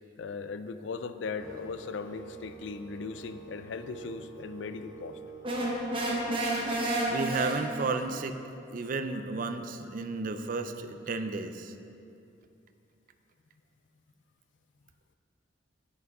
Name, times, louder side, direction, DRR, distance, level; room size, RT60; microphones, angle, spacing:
voice 1, 0.2-5.2 9.8-9.9, left 4 dB, 75° left, 11 dB, 0.4 m, -38 dB
sound 1, 1.4-7.5, right 3 dB, 20° left, 2.0 m, -48 dB
sound 2, 5.4-8.1, right 1 dB, 30° right, 1.2 m, -30 dB
voice 2, 7.1-8.4 8.7-11.7, right 3 dB, 45° right, 8 dB, 0.5 m, -33 dB
9.4 x 6.0 x 4.8 m, 2.6 s
head